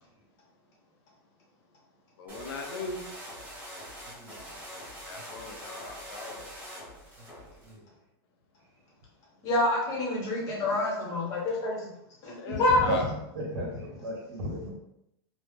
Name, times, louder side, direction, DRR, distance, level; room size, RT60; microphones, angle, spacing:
voice 1, 2.2-3.0 5.0-6.5 12.3-13.1, left 3 dB, 75° left, 3 dB, 0.6 m, -39 dB
sound 1, 2.3-7.7, equal, 10° right, 0.8 m, -44 dB
voice 2, 4.0-4.4 7.6-7.8 12.9-13.0 13.3-14.7, right 1 dB, 75° right, -2 dB, 1.3 m, -34 dB
voice 3, 9.4-11.9 12.2-12.8, left 2 dB, 25° left, -3 dB, 0.8 m, -27 dB
3.1 x 2.0 x 3.3 m, 0.83 s
supercardioid pair, 170°, 13 cm